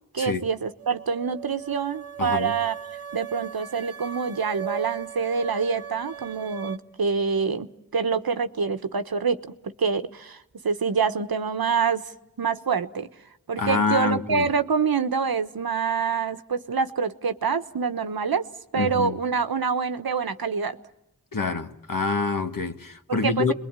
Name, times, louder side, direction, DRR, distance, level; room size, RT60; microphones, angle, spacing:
voice 1, 0.1-2.7 3.1-12.1 12.4-13.1 13.5-18.4 18.7-20.8 23.1-23.5, right 5 dB, 70° right, 1.1 m, -26 dB
sound 1, 0.8-6.8, right 10 dB, 40° right, 1.2 m, -37 dB
voice 2, 2.2-2.6 13.6-14.5 18.7-19.2 21.3-23.5, left 4 dB, 60° left, 1.6 m, -26 dB
29.5 x 21.5 x 8.9 m
wide cardioid pair, 50°, 38 cm